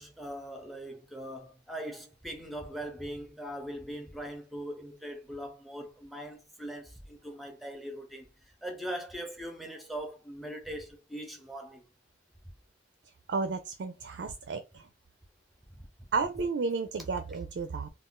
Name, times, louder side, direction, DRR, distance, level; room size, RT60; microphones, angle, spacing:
voice 1, 0.0-8.3 8.6-11.8, right 1 dB, ahead, 0.6 m, -41 dB
voice 2, 13.3-14.9 16.1-17.9, right 4 dB, 65° right, 0.4 m, -32 dB
2.5 x 2.3 x 3.6 m
head